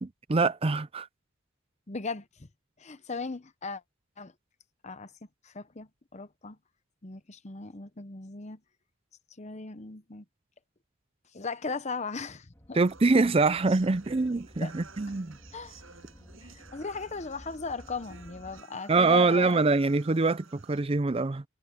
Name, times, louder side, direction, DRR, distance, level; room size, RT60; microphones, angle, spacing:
voice 1, 0.0-1.1 12.7-15.4 18.9-21.4, right 3 dB, 25° right, 0.5 m, -24 dB
voice 2, 1.9-2.5 2.8-3.8 4.2-4.3 4.8-5.1 5.4-6.6 7.0-8.6 9.4-10.2 11.3-12.8 14.6-14.7 15.5-15.8 16.4-19.6, left 4 dB, 35° left, 0.9 m, -38 dB
sound 1, 12.5-18.6, equal, 15° left, 3.8 m, -53 dB
sound 2, 12.8-20.8, right 5 dB, 70° right, 6.6 m, -54 dB
head